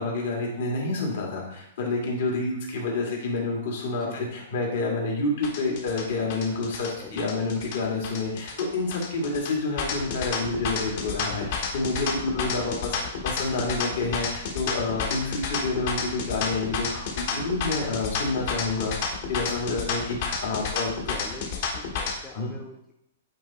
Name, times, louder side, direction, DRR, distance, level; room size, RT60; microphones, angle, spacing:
voice 1, 0.0-12.9 13.2-20.9 22.3-22.5, left 3 dB, 65° left, -2 dB, 2.1 m, -28 dB
voice 2, 4.0-4.4 7.0-7.3 12.2-12.6 13.0-13.1 17.3-17.6 21.1-21.4 21.7-22.9, left 2 dB, 10° left, -1 dB, 0.6 m, -44 dB
sound 1, 5.4-22.1, left 5 dB, 50° left, 1.2 m, -31 dB
8.4 x 2.9 x 4.2 m, 0.80 s
hypercardioid pair, 160°, 0 cm